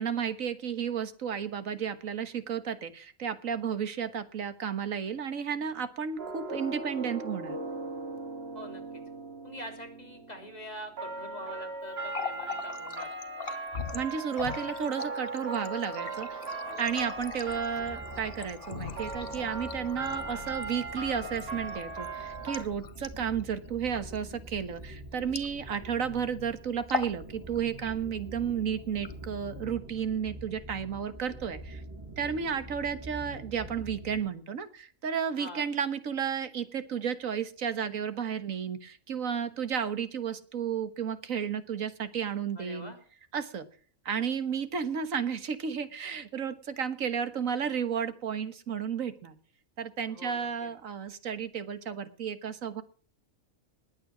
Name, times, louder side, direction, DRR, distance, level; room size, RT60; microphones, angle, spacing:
voice 1, 0.0-7.6 13.9-16.4 16.8-31.8 32.2-42.9 43.3-43.7 44.0-49.3 49.8-52.8, right 7 dB, 85° right, 11 dB, 1.8 m, -33 dB
sound 1, 6.2-22.6, right 3 dB, 50° right, 2.2 m, -39 dB
voice 2, 8.5-9.0 9.4-13.1 16.6-17.1 20.1-20.4 35.4-35.7 42.6-43.0 50.1-50.7, equal, 30° left, 4 dB, 3.3 m, -45 dB
Water tap faucet, 11.9-26.0 26.2-26.5 26.8-27.2 27.5-28.2 28.8-29.6, left 6 dB, 45° left, 1.3 m, -41 dB
sound 2, 16.8-34.3, right 1 dB, 15° right, 6.5 m, -45 dB
20.0 x 9.0 x 6.1 m, 0.43 s
omnidirectional pair, 1.4 m